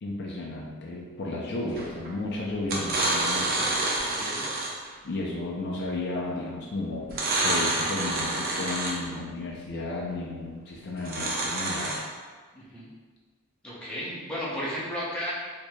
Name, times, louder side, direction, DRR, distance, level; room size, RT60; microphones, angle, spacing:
voice 1, 0.0-3.8 5.0-12.0, left 2 dB, 50° left, -3 dB, 0.4 m, -33 dB
sound 1, 1.8-2.1 2.6-4.9 7.1-9.1 11.0-12.0, right 2 dB, 45° right, 0.6 m, -28 dB
voice 2, 4.0-4.4 12.5-12.9 13.6-15.3, equal, 5° left, -8 dB, 0.7 m, -34 dB
4.5 x 2.7 x 2.2 m, 1.5 s
head